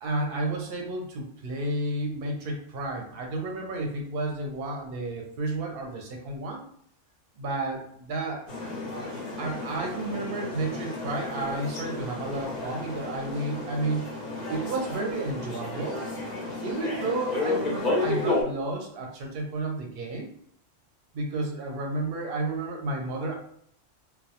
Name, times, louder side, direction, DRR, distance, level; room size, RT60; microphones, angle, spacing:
voice 1, 0.0-6.6 7.4-8.4 9.4-14.1 14.5-16.1 16.6-20.3 21.1-23.3, right 2 dB, 60° right, 1 dB, 0.7 m, -31 dB
sound 1, 8.5-18.4, left 2 dB, 55° left, 0.5 m, -32 dB
2.2 x 2.0 x 2.8 m, 0.67 s
omnidirectional pair, 1.3 m